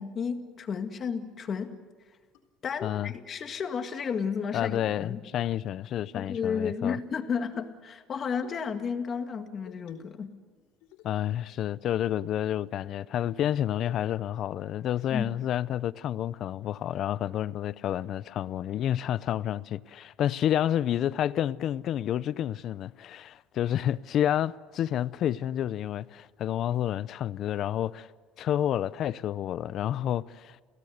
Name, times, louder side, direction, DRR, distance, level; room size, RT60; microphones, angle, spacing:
voice 1, 0.0-1.8 2.6-5.2 6.1-10.4 15.1-15.4, left 6 dB, 35° left, 1.9 m, -32 dB
sound 1, 2.3-2.4 3.0-3.2 3.6-3.7 4.0-4.4 4.7-5.5 6.5-7.2 7.5-7.8 8.4-8.6 9.7-10.2 10.6-11.2 11.6-11.7 12.0-12.3 12.7-12.8 13.3-13.6 13.9-14.3, left 9 dB, 85° left, 3.4 m, -52 dB
voice 2, 2.8-3.1 4.5-7.0 11.0-28.1 28.4-30.6, left 11 dB, 55° left, 0.6 m, -29 dB
29.0 x 16.5 x 8.1 m
cardioid pair, 120°, 0 cm